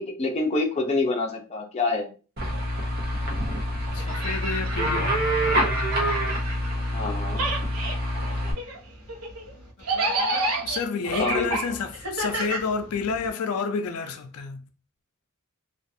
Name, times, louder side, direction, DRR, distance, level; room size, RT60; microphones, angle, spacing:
voice 1, 0.0-2.1 6.9-7.4 11.2-11.6, left 3 dB, 30° left, 0.5 m, -26 dB
sound 1, 2.4-8.5, equal, 45° right, 0.8 m, -26 dB
voice 2, 3.9-5.2 9.9-14.6, left 5 dB, 85° left, 0.4 m, -30 dB
sound 2, 3.9-7.0 7.3-13.3, right 2 dB, 80° right, 0.8 m, -30 dB
2.5 x 2.3 x 2.6 m
head